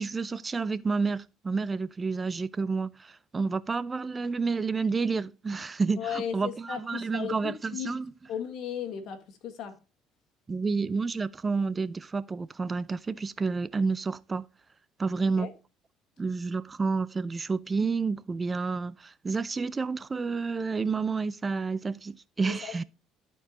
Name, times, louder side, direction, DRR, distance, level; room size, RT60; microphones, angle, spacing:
voice 1, 0.0-8.1 10.5-14.5 15.0-15.5 16.2-22.8, right 4 dB, 25° right, 0.4 m, -30 dB
voice 2, 6.0-7.9 8.3-9.8 15.2-15.5 22.4-22.8, left 8 dB, 65° left, 1.7 m, -36 dB
13.0 x 4.6 x 3.0 m
supercardioid pair, 90°, 0 cm